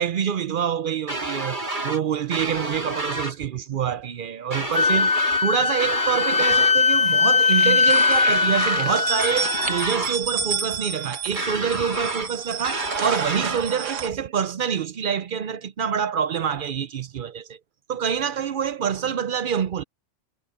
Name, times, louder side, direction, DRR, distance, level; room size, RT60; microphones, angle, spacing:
voice 1, 0.0-5.1 5.4-17.6 17.9-19.8, right 8 dB, 55° right, 0.6 m, -26 dB
sound 1, 1.1-2.0 2.3-3.4 4.5-5.5 5.8-6.8 7.9-8.9 9.2-10.2 11.4-12.3 12.6-13.6, right 2 dB, 40° right, 3.7 m, -30 dB
Wind instrument woodwind instrument, 4.7-9.9, left 5 dB, 45° left, 1.1 m, -20 dB
sound 2, 6.3-7.1 7.4-14.1, right 6 dB, 85° right, 1.7 m, -31 dB
omnidirectional pair, 1.2 m